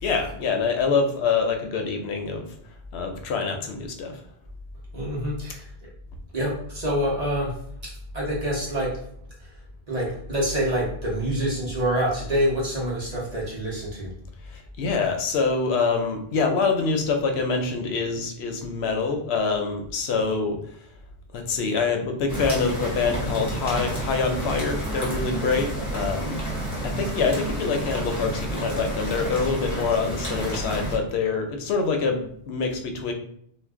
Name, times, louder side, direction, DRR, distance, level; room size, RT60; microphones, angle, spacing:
voice 1, 0.0-2.5 2.9-4.2 14.4-20.8 21.3-26.4 26.8-33.1, left 4 dB, 85° left, 4 dB, 0.8 m, -25 dB
voice 2, 4.9-5.7 6.3-7.6 7.8-9.0 9.4-9.5 9.9-14.1, equal, 40° right, -4 dB, 1.0 m, -26 dB
sound 1, 22.3-31.0, right 1 dB, 20° left, 0.9 m, -30 dB
2.6 x 2.1 x 3.5 m, 0.67 s
omnidirectional pair, 1.1 m